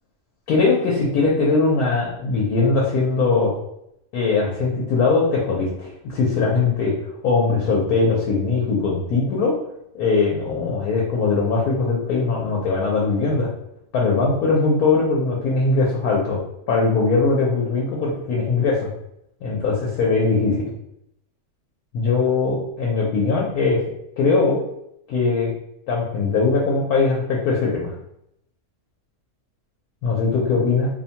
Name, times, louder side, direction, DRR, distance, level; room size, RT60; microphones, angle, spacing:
voice 1, 0.5-3.5 4.1-6.9 7.2-9.5 9.9-13.5 13.9-16.4 16.7-18.9 19.4-20.7 21.9-23.8 24.2-24.6 25.1-25.5 25.9-27.9 30.0-30.9, left 4 dB, 85° left, -3 dB, 1.1 m, -20 dB
2.7 x 2.1 x 2.7 m, 0.78 s
omnidirectional pair, 1.6 m